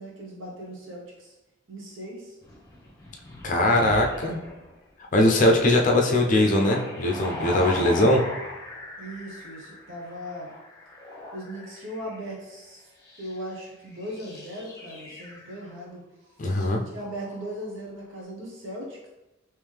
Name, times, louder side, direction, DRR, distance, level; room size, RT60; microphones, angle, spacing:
voice 1, 0.0-1.3 1.7-2.4 9.0-10.5 11.3-12.9 13.2-16.0 16.9-19.1, equal, 70° right, -3 dB, 1.1 m, -38 dB
sound 1, 2.4-4.7 5.9-12.3 13.0-13.4 13.9-15.7 16.4-16.7 17.0-17.5, left 1 dB, 20° left, 1.0 m, -39 dB
voice 2, 3.4-4.4 5.1-8.2 16.4-16.8, left 1 dB, 40° left, 1 dB, 0.5 m, -21 dB
3.6 x 3.0 x 3.3 m, 0.95 s
head